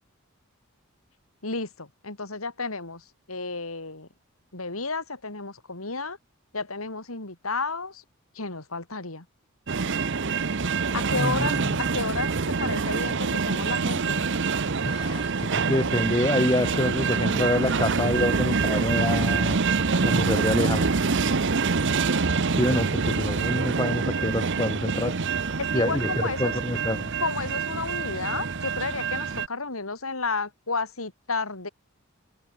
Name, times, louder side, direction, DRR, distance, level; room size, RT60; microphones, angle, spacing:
voice 1, 1.4-4.1 4.5-6.2 6.5-8.0 8.3-9.3 10.8-14.2 25.7-26.6 27.2-31.7, left 3 dB, 80° left, 3.9 m, -32 dB
sound 1, 9.7-29.5, right 4 dB, 60° right, 1.0 m, -26 dB
voice 2, 11.1-11.8 14.8-19.6 20.0-20.9 22.5-25.2 25.7-26.1 26.4-27.1, left 1 dB, 20° left, 1.8 m, -27 dB
head